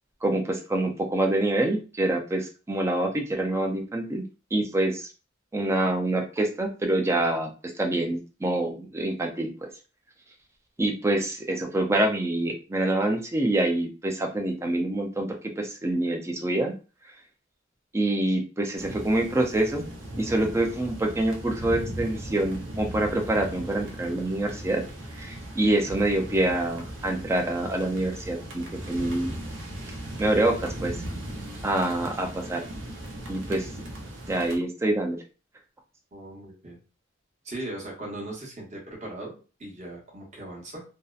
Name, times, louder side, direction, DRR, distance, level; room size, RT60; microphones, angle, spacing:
voice 1, 0.2-4.2 4.5-5.1 5.5-7.5 7.8-9.5 10.8-15.3 15.6-16.7 17.9-19.9 20.2-24.8 25.2-29.3 30.2-31.0 31.6-32.6 33.3-33.7 34.3-35.2, right 1 dB, 15° right, 3 dB, 0.4 m, -26 dB
sound 1, 18.8-34.6, right 1 dB, 75° right, 0.6 m, -38 dB
voice 2, 36.1-36.8 37.4-40.8, right 1 dB, 35° right, -3 dB, 0.9 m, -38 dB
2.7 x 2.0 x 2.3 m, 0.35 s
head